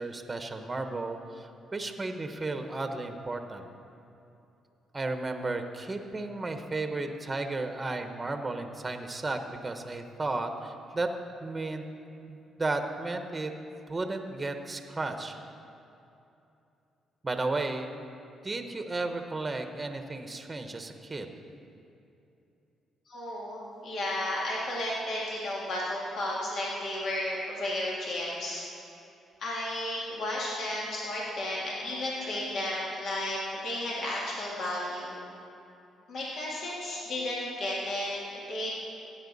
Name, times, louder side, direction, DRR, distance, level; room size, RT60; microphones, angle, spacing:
voice 1, 0.0-3.7 4.9-11.1 11.4-11.8 12.3-13.5 13.9-15.4 17.2-17.9 18.4-21.3, right 2 dB, 20° right, 6 dB, 0.9 m, -34 dB
voice 2, 23.1-28.6 29.4-35.2 36.1-38.7, left 1 dB, 65° left, -5 dB, 2.1 m, -33 dB
15.5 x 9.0 x 4.1 m, 2.8 s
cardioid pair, 90°, 0 cm